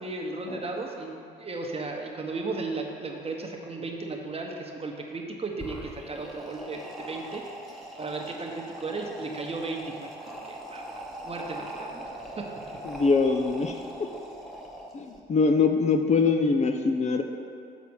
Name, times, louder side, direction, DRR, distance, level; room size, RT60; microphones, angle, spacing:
voice 1, 0.0-12.1 12.4-12.5, right 3 dB, 30° right, 1 dB, 1.0 m, -35 dB
sound 1, 5.5-15.2, right 1 dB, ahead, 1.0 m, -41 dB
voice 2, 12.8-14.1 14.9-17.2, left 4 dB, 35° left, 5 dB, 0.5 m, -23 dB
7.2 x 4.1 x 6.2 m, 2.4 s
cardioid pair, 90°, 20 cm